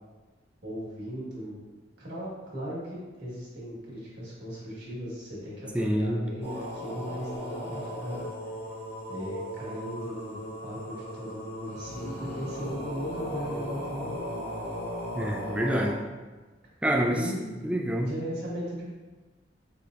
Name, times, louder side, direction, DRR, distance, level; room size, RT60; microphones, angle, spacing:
voice 1, 0.6-1.6 2.0-8.2 9.1-14.5 17.1-17.5 18.0-18.8, equal, 60° right, -7 dB, 1.5 m, -37 dB
voice 2, 5.7-6.2 15.1-16.0 16.8-17.3 17.6-18.1, equal, 5° right, 0 dB, 0.4 m, -26 dB
sound 1, 6.4-15.9, equal, 35° left, 1.0 m, -37 dB
4.9 x 2.8 x 2.5 m, 1.3 s
head